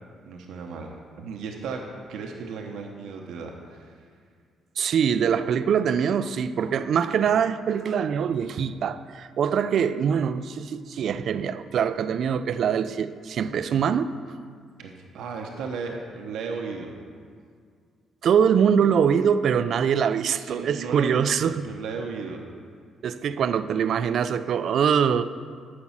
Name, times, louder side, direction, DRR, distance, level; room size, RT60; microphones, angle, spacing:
voice 1, 0.2-1.8 2.1-4.1 14.8-16.9 20.3-22.4, right 4 dB, 85° right, 1.0 m, -35 dB
voice 2, 4.8-14.1 18.2-21.6 23.0-25.2, right 7 dB, 65° right, 0.4 m, -23 dB
9.7 x 6.0 x 7.3 m
cardioid pair, 90°, 0 cm